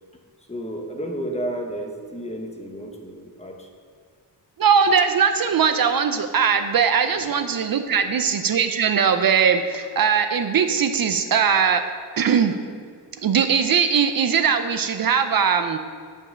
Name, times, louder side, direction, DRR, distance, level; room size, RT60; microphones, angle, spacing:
voice 1, 0.5-3.7 7.1-7.3 7.9-8.1, right 1 dB, 15° left, 2 dB, 1.0 m, -32 dB
voice 2, 4.6-11.8 12.2-12.6 13.2-15.8, right 6 dB, 55° right, 8 dB, 0.6 m, -20 dB
9.5 x 5.4 x 6.3 m, 2.1 s
wide cardioid pair, 150°, 42 cm